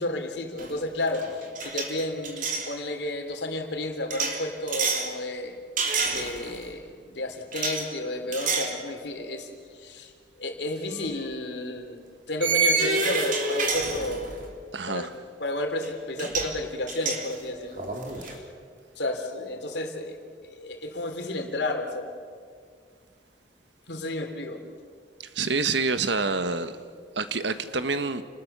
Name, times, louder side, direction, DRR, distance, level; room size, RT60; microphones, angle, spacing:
voice 1, 0.0-5.5 6.0-10.1 10.4-12.0 12.3-14.3 14.9-15.1 15.4-17.8 18.2-18.4 19.0-22.1 23.9-24.6, left 1 dB, 75° left, 3.2 m, -32 dB
sound 1, 0.6-0.8 1.1-2.7 4.1-5.1 5.8-6.6 7.5-7.8 8.3-8.8 9.2-9.4 10.9-11.0 12.4-14.5 15.8-15.9 16.2-16.5 16.9-18.3, right 3 dB, 50° right, 3.4 m, -28 dB
voice 2, 14.7-15.1 25.2-26.8 27.1-28.2, right 4 dB, 85° right, 1.4 m, -27 dB
29.0 x 20.0 x 6.8 m
head